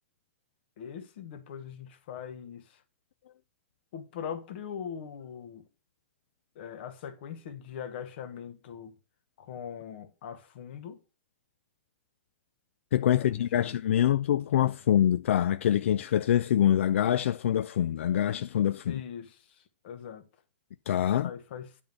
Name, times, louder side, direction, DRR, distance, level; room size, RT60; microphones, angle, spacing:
voice 1, 0.8-2.8 3.9-5.7 6.5-8.9 9.4-11.0 13.0-13.8 18.9-20.3 21.2-21.8, left 8 dB, 55° left, 1.3 m, -41 dB
voice 2, 12.9-19.0 20.9-21.3, left 10 dB, 75° left, 0.3 m, -25 dB
10.0 x 3.6 x 6.6 m
hypercardioid pair, 155°, 7 cm